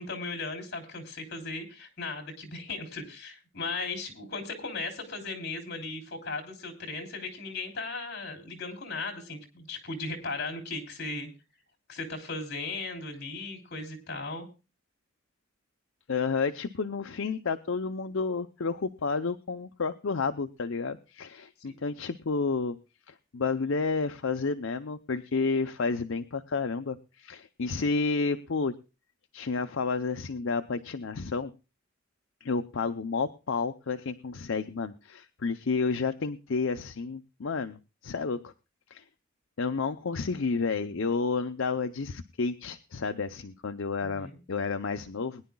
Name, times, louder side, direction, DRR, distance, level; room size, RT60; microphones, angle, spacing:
voice 1, 0.0-11.3 11.9-14.5 21.7-21.8 44.0-44.3, left 3 dB, 55° left, 4 dB, 3.2 m, -37 dB
voice 2, 16.1-22.8 23.1-28.7 29.3-31.5 32.4-37.8 38.0-38.5 38.9-39.0 39.6-45.4, left 4 dB, 70° left, 8 dB, 0.6 m, -31 dB
22.0 x 10.5 x 2.3 m, 0.30 s
head